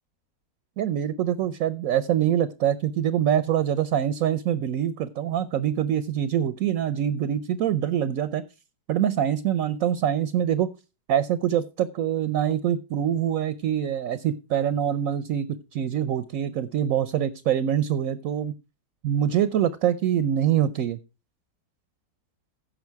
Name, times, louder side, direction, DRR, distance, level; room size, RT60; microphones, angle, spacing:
voice 1, 0.8-8.4 8.9-10.7 11.1-18.5 19.0-21.0, right 10 dB, 65° right, 14 dB, 1.0 m, -24 dB
15.5 x 5.7 x 4.6 m, 0.30 s
omnidirectional pair, 1.8 m